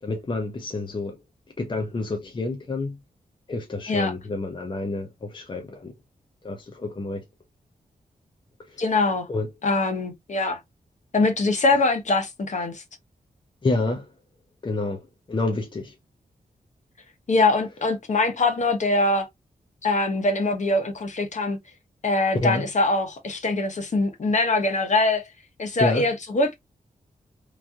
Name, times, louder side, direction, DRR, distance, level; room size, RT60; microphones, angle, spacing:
voice 1, 0.0-1.2 1.6-3.0 3.5-5.9 6.4-7.2 8.6-8.8 9.3-9.5 13.6-14.1 14.6-16.0 22.3-22.7 25.8-26.1, left 2 dB, 35° left, 0.6 m, -28 dB
voice 2, 8.8-9.3 9.6-10.6 11.1-12.8 17.3-19.3 19.8-21.6 22.0-25.3 25.6-26.5, left 2 dB, 55° left, 0.9 m, -23 dB
3.1 x 2.6 x 2.3 m
wide cardioid pair, 110°, 15 cm